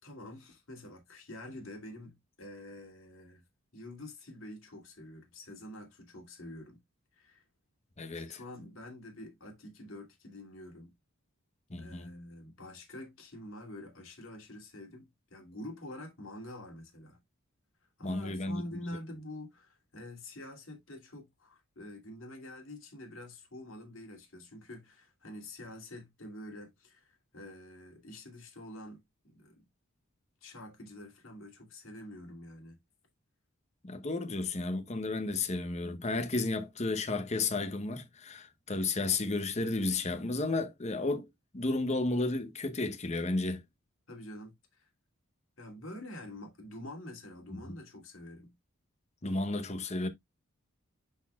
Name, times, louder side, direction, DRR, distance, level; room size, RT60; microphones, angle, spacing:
voice 1, 0.0-3.4 3.7-6.8 7.2-7.4 8.1-10.9 11.8-17.2 18.0-29.6 30.4-32.8 44.1-44.9 45.6-48.5, left 1 dB, 60° left, 2.7 m, -47 dB
voice 2, 8.0-8.4 11.7-12.1 18.0-18.8 33.8-41.3 41.5-43.6 47.5-47.6 49.2-50.1, left 3 dB, 30° left, 0.9 m, -32 dB
10.5 x 4.1 x 2.3 m
head